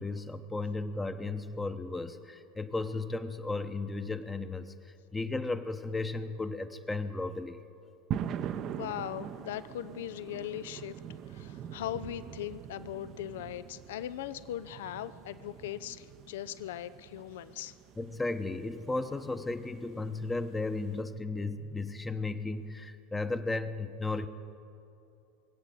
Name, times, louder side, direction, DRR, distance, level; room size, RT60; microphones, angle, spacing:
voice 1, 0.0-4.7 5.1-7.6 18.0-24.3, left 3 dB, 15° left, 9 dB, 0.9 m, -35 dB
sound 1, 8.1-21.0, right 9 dB, 40° right, 0.6 m, -43 dB
voice 2, 8.5-11.0 11.3-17.7, left 12 dB, 65° left, 15 dB, 0.4 m, -39 dB
22.5 x 8.3 x 7.5 m, 2.7 s
figure-of-eight pair, 80°, 0 cm